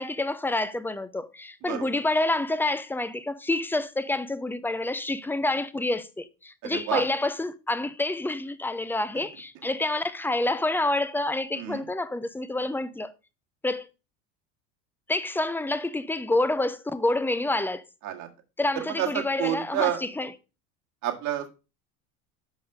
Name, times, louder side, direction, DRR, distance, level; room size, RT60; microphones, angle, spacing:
voice 1, 0.0-13.1 13.6-13.9 15.1-17.8 18.6-20.3, left 2 dB, 5° left, 0.5 m, -28 dB
voice 2, 6.6-7.1 9.1-9.2 11.5-11.8 18.0-18.3 18.7-20.0 21.0-21.5, right 11 dB, 50° right, 1.9 m, -29 dB
6.3 x 5.3 x 4.9 m
supercardioid pair, 110°, 36 cm